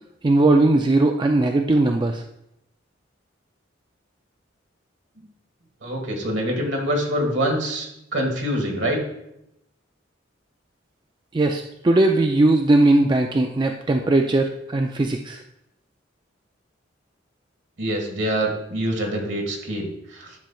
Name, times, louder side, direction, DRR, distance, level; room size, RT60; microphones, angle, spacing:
voice 1, 0.2-2.2 11.3-15.4, right 2 dB, 25° right, 4 dB, 0.3 m, -19 dB
voice 2, 5.8-9.0 17.8-20.3, equal, 65° right, 1 dB, 1.6 m, -25 dB
10.5 x 5.6 x 2.3 m, 0.82 s
head